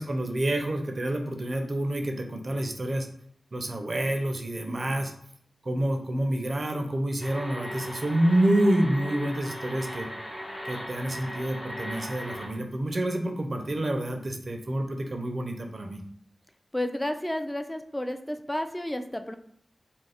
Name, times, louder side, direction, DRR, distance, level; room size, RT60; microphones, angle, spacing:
voice 1, 0.0-3.1 3.5-5.1 5.6-10.1 10.6-16.0, right 1 dB, 55° right, 3 dB, 0.4 m, -28 dB
sound 1, 7.2-12.5, equal, 55° left, 0.8 m, -38 dB
voice 2, 16.7-19.3, left 1 dB, 15° left, 7 dB, 0.3 m, -31 dB
2.4 x 2.0 x 3.3 m, 0.68 s
cardioid pair, 40°, 0 cm